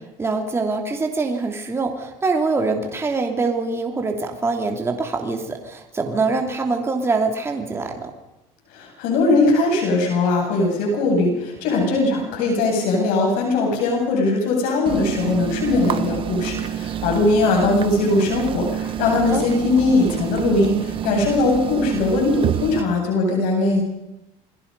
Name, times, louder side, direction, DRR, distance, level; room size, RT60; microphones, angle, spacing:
voice 1, 0.2-8.1 19.3-19.4, right 3 dB, 15° right, 3 dB, 2.9 m, -24 dB
voice 2, 8.7-23.8, left 3 dB, 75° left, 0 dB, 7.9 m, -20 dB
sound 1, 14.9-22.8, right 10 dB, 35° right, 0.9 m, -27 dB
28.5 x 21.5 x 5.5 m, 0.91 s
cardioid pair, 135°, 15 cm